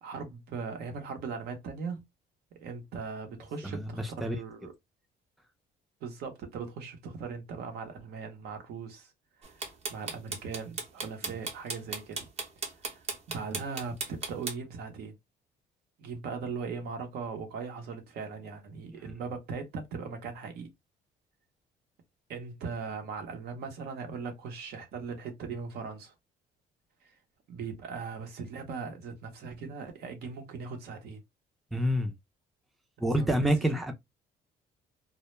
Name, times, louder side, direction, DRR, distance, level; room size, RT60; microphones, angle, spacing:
voice 1, 0.0-2.0 2.5-4.7 6.0-9.1 9.4-12.3 12.8-15.1 16.0-20.7 22.3-26.1 27.0-27.1 27.5-31.2 33.1-33.7, right 5 dB, 70° right, 0.8 m, -39 dB
voice 2, 3.6-4.4 31.7-32.1 33.0-33.9, right 1 dB, ahead, 0.4 m, -27 dB
sound 1, 9.4-14.5, right 4 dB, 40° right, 0.8 m, -35 dB
2.1 x 2.1 x 3.0 m
cardioid pair, 110°, 17 cm